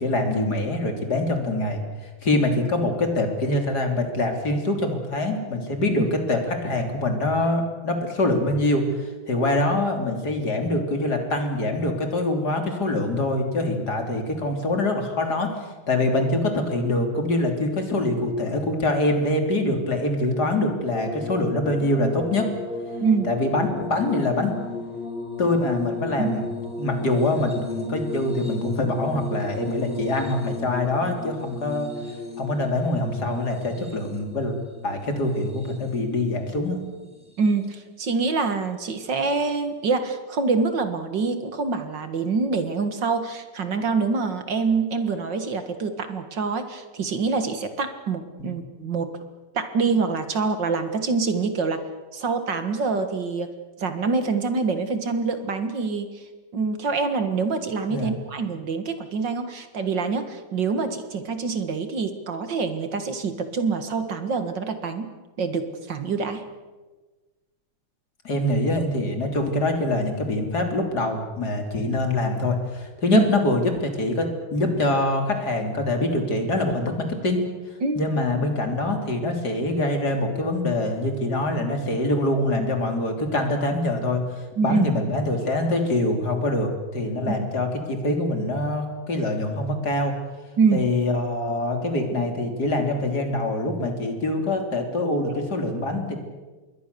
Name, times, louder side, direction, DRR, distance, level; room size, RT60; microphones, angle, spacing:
voice 1, 0.0-1.8 2.2-15.5 15.9-22.5 23.2-24.5 25.4-26.5 26.8-31.9 32.4-34.6 34.8-36.8 48.4-48.5 57.9-58.1 68.2-77.4 78.0-84.2 84.6-90.1 90.7-96.2, left 2 dB, 50° left, 4 dB, 3.8 m, -24 dB
sound 1, 20.9-36.2 37.0-37.7 39.2-39.3, left 2 dB, 5° right, 4.8 m, -35 dB
voice 2, 37.4-49.1 49.5-51.8 52.1-53.5 53.8-56.2 56.5-65.1 65.4-66.4 73.1-73.2 77.8-78.0 84.6-84.9 87.3-87.4 90.6-90.8, right 4 dB, 60° right, 8 dB, 2.3 m, -25 dB
27.5 x 22.0 x 6.9 m, 1.3 s
omnidirectional pair, 2.3 m